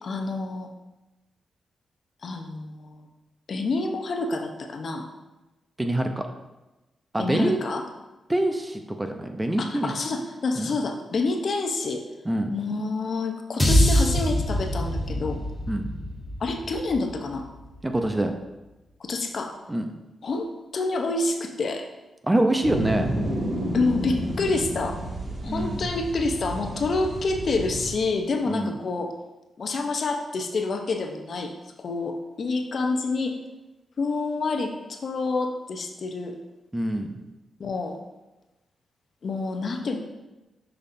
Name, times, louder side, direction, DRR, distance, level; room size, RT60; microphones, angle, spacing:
voice 1, 0.0-0.7 2.2-3.1 3.5-5.1 7.2-7.8 9.6-12.0 12.5-15.4 16.4-17.5 19.0-19.6 20.2-20.5 20.7-21.8 23.7-25.0 25.4-29.1 29.6-31.5 31.8-33.4 34.0-36.4 37.6-38.0 39.2-40.0, left 3 dB, 60° left, 4 dB, 0.8 m, -28 dB
voice 2, 5.8-6.2 7.1-7.6 8.3-9.9 10.6-10.7 12.2-12.5 15.7-15.9 17.8-18.3 19.7-19.9 22.2-23.1 25.4-25.9 28.5-28.8 36.7-37.2, right 1 dB, 15° right, 5 dB, 0.7 m, -25 dB
sound 1, 13.6-17.9, equal, 20° left, 1.3 m, -24 dB
sound 2, 22.6-27.9, right 1 dB, 55° right, 1.7 m, -30 dB
6.5 x 5.5 x 2.7 m, 1.0 s
cardioid pair, 65°, 0 cm